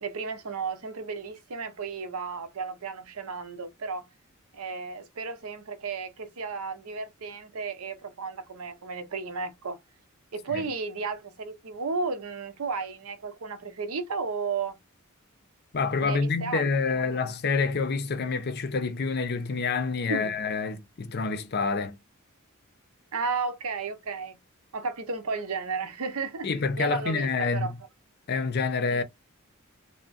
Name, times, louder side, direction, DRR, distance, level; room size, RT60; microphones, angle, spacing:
voice 1, 0.0-4.1 4.5-9.8 10.3-14.8 16.0-17.3 20.1-20.3 23.1-24.4 24.7-26.5 26.8-27.7 28.9-29.0, right 4 dB, 90° right, 0.7 m, -33 dB
voice 2, 15.7-22.0 26.4-27.8 28.3-29.0, left 4 dB, 50° left, 0.5 m, -27 dB
3.4 x 2.1 x 2.5 m
head